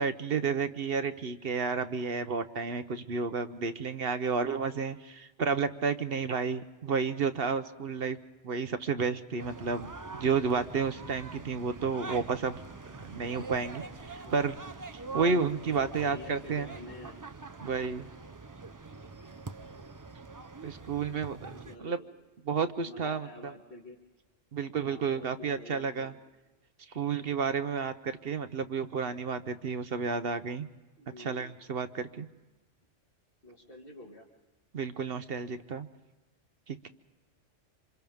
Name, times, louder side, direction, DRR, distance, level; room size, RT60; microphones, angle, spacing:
voice 1, 0.0-8.2 8.4-14.6 15.1-16.7 17.6-18.1 20.6-22.0 22.5-23.5 24.5-26.1 26.9-30.7 31.2-32.3 34.7-35.9 36.7-36.9, right 5 dB, 55° right, 10 dB, 0.9 m, -31 dB
sound 1, 9.4-21.8, right 4 dB, 25° right, 0.5 m, -44 dB
voice 2, 15.8-17.2 19.7-20.1 21.6-22.1 22.8-24.0 24.8-26.2 31.0-31.6 33.4-34.3, left 2 dB, 45° left, -4 dB, 2.5 m, -48 dB
27.5 x 26.5 x 3.5 m, 1.2 s
omnidirectional pair, 1.3 m